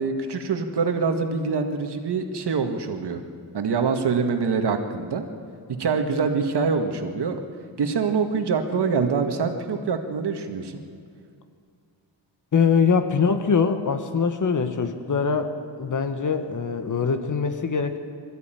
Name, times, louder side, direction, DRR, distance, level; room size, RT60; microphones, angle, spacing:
voice 1, 0.0-3.2 3.5-5.2 5.8-7.4 7.8-10.8, right 5 dB, 65° right, 5 dB, 1.9 m, -25 dB
voice 2, 12.5-18.0, left 5 dB, 45° left, 8 dB, 1.4 m, -23 dB
22.5 x 14.0 x 9.1 m, 2.4 s
wide cardioid pair, 150°, 43 cm